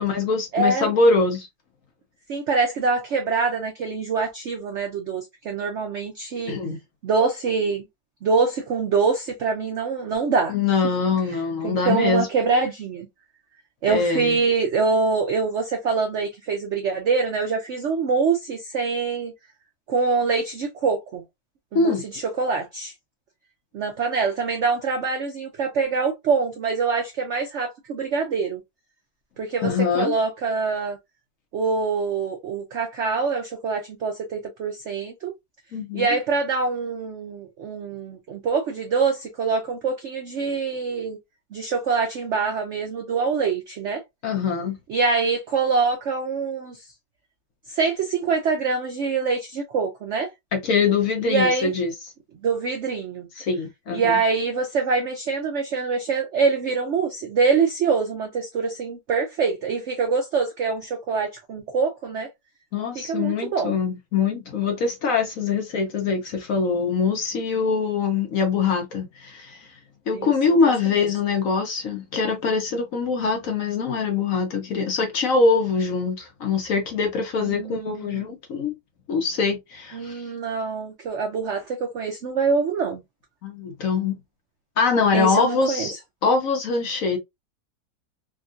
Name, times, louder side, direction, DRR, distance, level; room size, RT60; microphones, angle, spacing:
voice 1, 0.0-1.5 6.5-6.8 10.5-12.3 13.9-14.4 21.7-22.0 29.6-30.1 35.7-36.1 44.2-44.8 50.5-51.9 53.4-54.2 62.7-69.7 70.1-78.7 79.1-80.3 83.4-84.2 84.8-85.9 86.2-87.2, left 4 dB, 60° left, 1.0 m, -23 dB
voice 2, 0.5-0.9 2.3-6.6 7.0-7.8 8.2-10.5 11.6-13.1 13.8-19.3 19.9-21.2 21.7-22.9 23.7-28.6 29.4-31.0 31.5-35.3 35.9-41.2 41.5-44.0 44.9-46.8 47.7-50.3 51.3-51.7 52.4-53.3 53.9-62.3 62.9-63.8 70.1-70.3 70.6-70.7 71.0-71.1 77.4-78.3 79.9-83.0 85.1-85.9, right 4 dB, 80° right, 0.6 m, -24 dB
3.5 x 2.3 x 2.4 m
omnidirectional pair, 1.9 m